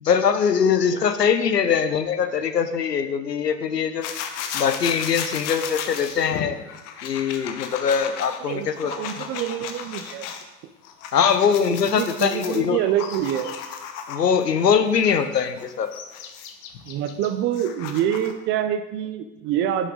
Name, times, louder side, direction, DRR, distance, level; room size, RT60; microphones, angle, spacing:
voice 1, 0.0-4.1 4.5-6.6 7.0-9.3 11.1-12.8 14.1-15.9, left 7 dB, 90° left, 10 dB, 0.9 m, -22 dB
sound 1, 4.0-10.4 10.8-14.4 15.0-18.4, left 8 dB, 50° left, 1.1 m, -35 dB
voice 2, 8.5-10.3 11.7-13.5 16.8-19.9, right 10 dB, 25° right, 10 dB, 0.4 m, -26 dB
10.5 x 6.4 x 3.8 m, 1.1 s
hypercardioid pair, 95°, 47 cm